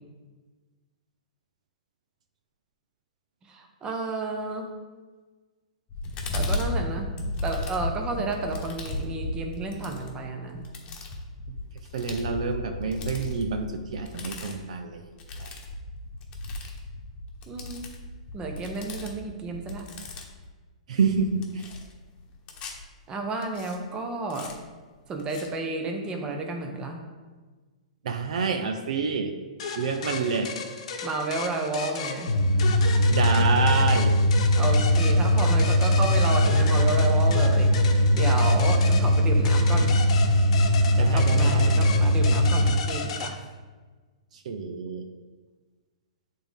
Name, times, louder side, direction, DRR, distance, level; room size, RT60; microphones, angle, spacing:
voice 1, 3.5-4.7 6.3-7.1 7.4-10.7 17.5-17.9 18.3-19.8 23.1-24.5 25.1-27.0 31.0-32.3 34.6-40.0 41.0-43.4, right 3 dB, 20° right, 3 dB, 0.9 m, -31 dB
sound 1, 5.9-20.5 21.0-22.8 23.4-23.7 24.3-24.5 25.2-25.5, left 2 dB, 25° left, 1.2 m, -35 dB
voice 2, 11.9-15.1 15.4-15.5 20.9-21.6 28.0-29.3 29.8-30.5 33.1-34.2 41.0-41.9 44.3-45.0, right 5 dB, 65° right, 6 dB, 0.6 m, -28 dB
sound 2, 29.6-43.3, left 5 dB, 60° left, 0.9 m, -35 dB
sound 3, 32.3-42.7, left 1 dB, 85° left, 0.8 m, -20 dB
8.6 x 3.7 x 3.6 m, 1.3 s
hypercardioid pair, 125°, 4 cm